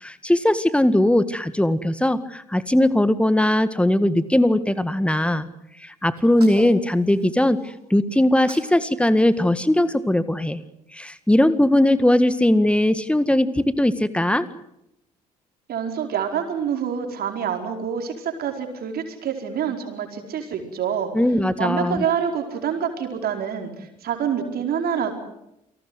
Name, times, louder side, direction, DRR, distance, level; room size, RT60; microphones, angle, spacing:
voice 1, 0.0-5.5 5.8-7.6 7.9-10.6 10.9-14.5 21.1-22.0, left 1 dB, 5° left, 14 dB, 1.8 m, -19 dB
Sneeze, 6.2-7.8 8.2-8.8 9.1-10.5, right 4 dB, 85° right, 3.4 m, -44 dB
voice 2, 15.7-21.1 21.6-25.1, right 8 dB, 55° right, 4 dB, 4.7 m, -26 dB
28.5 x 19.0 x 8.0 m, 0.82 s
figure-of-eight pair, 45°, 19 cm